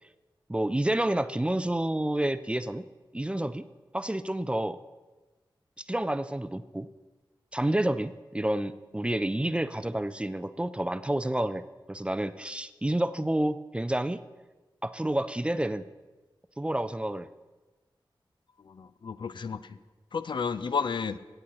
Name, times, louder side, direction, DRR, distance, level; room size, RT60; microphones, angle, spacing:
voice 1, 0.5-2.8 3.1-3.6 3.9-4.8 5.9-6.9 7.5-11.6 11.9-14.2 14.8-15.8 16.6-17.3, right 1 dB, 15° right, 13 dB, 0.3 m, -29 dB
voice 2, 18.7-19.8 20.1-21.2, left 5 dB, 65° left, 13 dB, 0.4 m, -32 dB
17.0 x 7.7 x 2.9 m, 1.2 s
wide cardioid pair, 85°, 9 cm